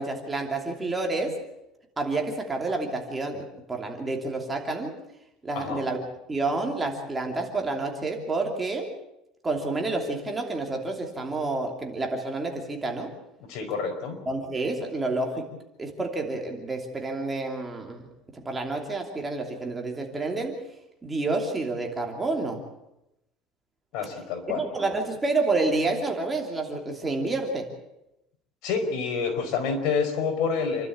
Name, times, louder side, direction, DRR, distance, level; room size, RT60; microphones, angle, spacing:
voice 1, 0.0-1.4 2.0-4.9 5.4-6.0 6.3-8.9 9.4-13.1 14.3-15.5 15.8-18.0 18.3-20.6 21.0-22.6 24.5-27.7, right 3 dB, 15° right, 2 dB, 2.9 m, -29 dB
voice 2, 5.5-5.9 13.5-14.2 23.9-24.6 28.6-30.9, left 5 dB, 60° left, 5 dB, 5.0 m, -28 dB
28.5 x 12.5 x 8.8 m, 0.87 s
cardioid pair, 165°, 0 cm